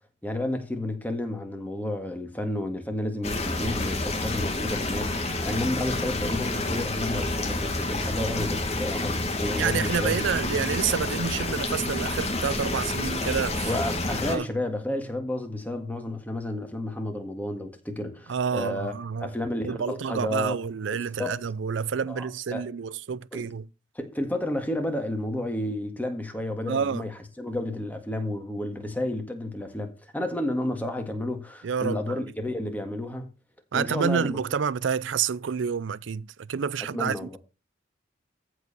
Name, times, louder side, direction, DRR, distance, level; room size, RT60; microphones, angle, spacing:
voice 1, 0.2-10.3 13.6-18.9 19.2-20.6 20.9-21.4 22.1-22.7 23.3-23.5 24.0-27.1 27.4-33.3 33.7-34.4 36.9-37.4, left 1 dB, 10° left, 1.8 m, -31 dB
sound 1, 3.2-14.4, left 2 dB, 35° left, 2.1 m, -29 dB
voice 2, 9.6-13.7 14.3-14.5 18.3-19.3 19.6-23.7 26.7-27.1 31.6-32.3 33.7-37.4, right 6 dB, 70° right, 0.4 m, -29 dB
14.5 x 4.8 x 6.8 m
head